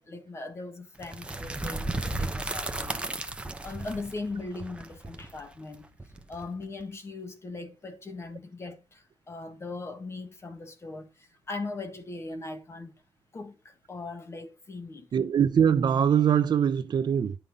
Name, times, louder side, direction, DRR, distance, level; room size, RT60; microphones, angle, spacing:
voice 1, 0.0-3.0 3.6-5.9 6.3-13.0 13.3-15.1, left 3 dB, 30° left, 1.5 m, -39 dB
sound 1, 1.0-6.8, right 2 dB, 10° right, 0.8 m, -35 dB
voice 2, 15.1-17.4, right 8 dB, 50° right, 0.9 m, -23 dB
10.0 x 5.7 x 5.2 m
wide cardioid pair, 160°, 10 cm